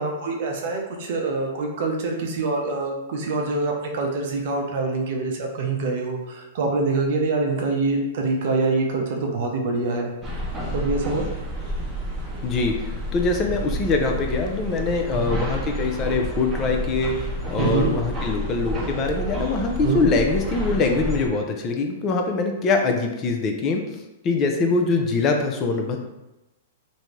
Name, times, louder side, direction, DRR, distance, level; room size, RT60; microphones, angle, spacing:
voice 1, 0.0-10.1 10.7-11.3 15.3-15.4 17.6-17.9 19.8-20.0, right 3 dB, 55° right, 1 dB, 0.6 m, -25 dB
sound 1, 10.2-21.3, right 1 dB, 20° right, 0.7 m, -30 dB
voice 2, 12.4-26.0, left 3 dB, 30° left, 3 dB, 0.4 m, -23 dB
2.6 x 2.1 x 3.1 m, 0.97 s
hypercardioid pair, 115°, 0 cm